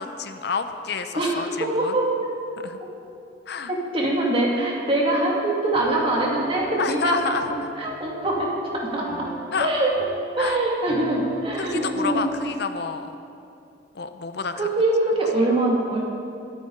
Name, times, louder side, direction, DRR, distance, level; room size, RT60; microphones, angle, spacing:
voice 1, 0.0-2.0 2.6-2.8 3.5-3.7 6.8-7.4 9.5-9.7 10.4-10.6 11.6-13.1 13.9-14.7, left 5 dB, 60° left, 9 dB, 0.6 m, -29 dB
voice 2, 1.1-2.4 3.7-7.2 7.5-9.3 9.6-9.9 10.4-12.3 14.5-16.0, right 2 dB, 30° right, -3 dB, 2.4 m, -23 dB
Piano, 5.7-12.6, equal, 45° left, 1.1 m, -38 dB
22.0 x 9.2 x 3.9 m, 2.6 s
head